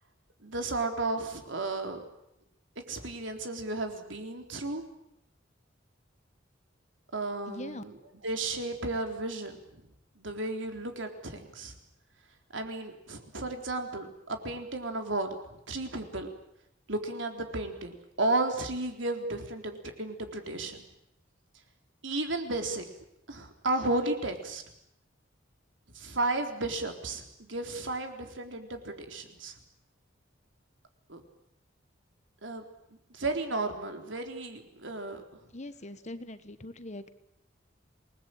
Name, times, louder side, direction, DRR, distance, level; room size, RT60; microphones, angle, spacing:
voice 1, 0.4-2.0 2.9-4.8 7.1-8.0 8.2-9.8 10.2-11.8 12.5-15.4 15.7-16.3 16.9-20.8 22.0-22.9 23.3-24.6 25.9-29.5 31.1-31.2 32.4-32.6 33.1-35.2, right 2 dB, 80° right, 5 dB, 3.8 m, -33 dB
voice 2, 7.5-7.8 35.5-37.1, left 1 dB, 35° left, 12 dB, 1.4 m, -41 dB
27.5 x 20.0 x 8.9 m, 0.81 s
head